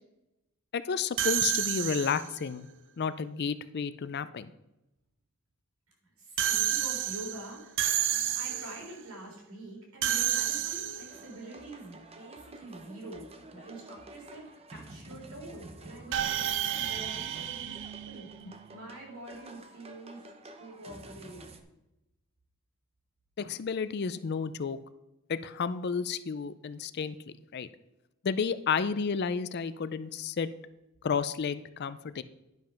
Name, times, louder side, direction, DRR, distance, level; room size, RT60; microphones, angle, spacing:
voice 1, 0.7-2.7 3.0-4.5 23.4-24.8 25.3-27.2 27.5-27.7 28.2-30.5 31.0-32.2, left 6 dB, 50° left, 14 dB, 0.4 m, -31 dB
sound 1, 1.2-2.4 6.4-8.9 10.0-11.3 16.1-18.7, right 11 dB, 60° right, 0.6 m, -30 dB
voice 2, 6.2-17.8 18.1-18.3 18.7-20.3 20.6-21.4, right 1 dB, 80° right, -1 dB, 3.6 m, -46 dB
sound 2, 11.1-21.6, right 2 dB, 30° right, 0.8 m, -49 dB
10.5 x 5.3 x 5.8 m, 0.93 s
head